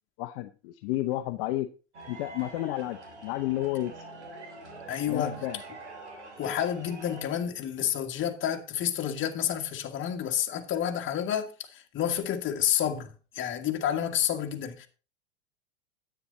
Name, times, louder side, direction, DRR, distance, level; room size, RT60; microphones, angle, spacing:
voice 1, 0.2-1.7 2.1-4.0 5.1-5.6, left 15 dB, 60° left, 0.8 m, -31 dB
sound 1, 1.9-7.2, right 2 dB, 85° right, 3.1 m, -45 dB
voice 2, 4.9-5.4 6.4-14.9, left 10 dB, 35° left, 1.7 m, -30 dB
9.7 x 9.2 x 3.9 m
hypercardioid pair, 95°, 33 cm